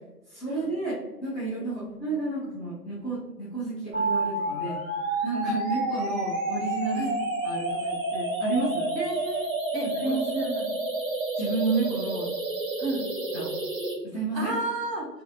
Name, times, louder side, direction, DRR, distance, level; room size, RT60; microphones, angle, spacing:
voice 1, 0.3-4.8 5.2-7.0 7.4-8.9 9.8-10.2 11.4-12.3 13.3-13.5 14.0-14.5, right 3 dB, ahead, -11 dB, 0.5 m, -31 dB
voice 2, 1.7-2.0 6.9-7.2 8.9-9.5 9.7-10.7 12.8-13.0 14.3-15.1, right 2 dB, 80° right, -2 dB, 1.2 m, -32 dB
sound 1, 3.9-13.9, right 2 dB, 55° right, 1.2 m, -29 dB
3.0 x 2.6 x 2.7 m, 1.1 s
figure-of-eight pair, 145°, 49 cm